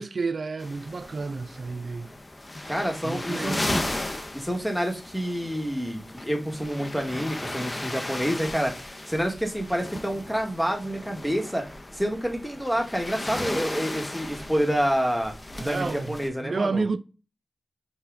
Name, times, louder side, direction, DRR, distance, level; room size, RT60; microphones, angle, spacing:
voice 1, 0.0-2.1 2.6-2.7 3.0-3.8 15.6-17.0, right 4 dB, 65° right, 0.3 m, -31 dB
sound 1, 0.6-16.3, left 1 dB, 30° left, 0.6 m, -36 dB
voice 2, 2.7-3.9 4.3-11.6 11.9-15.3 15.6-16.8, equal, 5° left, 1.1 m, -28 dB
5.6 x 2.2 x 3.5 m
cardioid pair, 55°, 0 cm